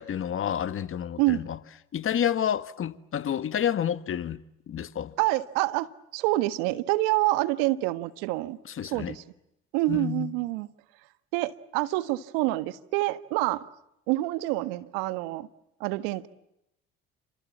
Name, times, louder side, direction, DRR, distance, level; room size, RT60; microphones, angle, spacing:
voice 1, 0.0-1.6 1.9-4.4 4.7-5.2 8.7-9.2 9.9-10.3, left 9 dB, 45° left, 1.8 m, -29 dB
voice 2, 5.2-8.6 8.8-9.2 9.7-10.7 11.3-13.6 14.1-15.5 15.8-16.3, right 18 dB, 80° right, 1.5 m, -27 dB
30.0 x 27.0 x 7.4 m
hypercardioid pair, 65°, 29 cm